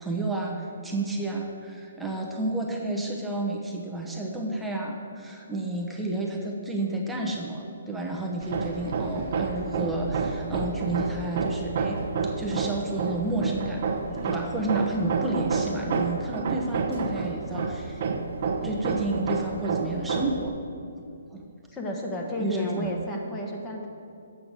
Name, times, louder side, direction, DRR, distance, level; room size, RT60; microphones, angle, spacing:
voice 1, 0.0-12.0 12.2-13.8 14.2-18.0 18.6-20.5 21.0-21.1 21.3-21.4 22.4-23.0, right 2 dB, 5° right, -1 dB, 0.8 m, -31 dB
Hammer, 8.4-20.5, right 4 dB, 50° right, 0.8 m, -29 dB
voice 2, 21.7-23.9, left 1 dB, 15° left, 0 dB, 1.2 m, -32 dB
7.8 x 5.8 x 6.6 m, 2.5 s
hypercardioid pair, 155°, 0 cm